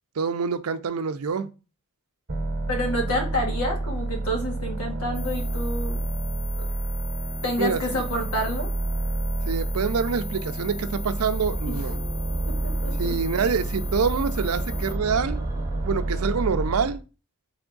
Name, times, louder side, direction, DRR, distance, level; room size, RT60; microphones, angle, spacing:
voice 1, 0.2-1.5 7.6-7.8 9.5-12.0 13.0-15.4 15.8-17.0, right 5 dB, 80° right, 0.5 m, -26 dB
sound 1, 2.3-17.0, right 2 dB, 45° right, 0.9 m, -29 dB
voice 2, 2.7-6.0 6.6-6.7 7.4-8.7 11.7-11.8 12.5-13.2, equal, 85° left, 1.7 m, -29 dB
sound 2, 5.1-14.9, left 4 dB, 25° left, 0.3 m, -38 dB
Angelic Choir, 11.4-16.7, right 1 dB, 15° right, 0.8 m, -37 dB
3.5 x 3.5 x 3.8 m
head